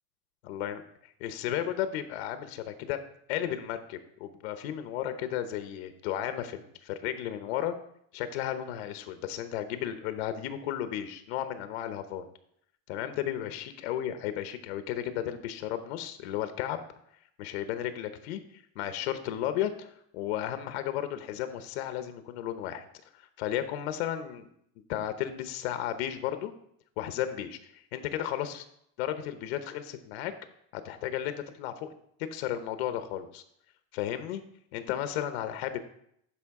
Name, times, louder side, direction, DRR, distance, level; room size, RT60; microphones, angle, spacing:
voice 1, 0.5-3.0 3.3-7.7 8.1-12.3 12.9-16.8 17.4-22.9 23.1-24.5 24.9-26.5 27.0-28.6 29.0-30.3 30.7-31.9 32.3-33.4 33.9-34.4 34.7-35.8, left 11 dB, 90° left, 10 dB, 0.9 m, -34 dB
11.5 x 5.0 x 3.6 m, 0.71 s
cardioid pair, 170°, 31 cm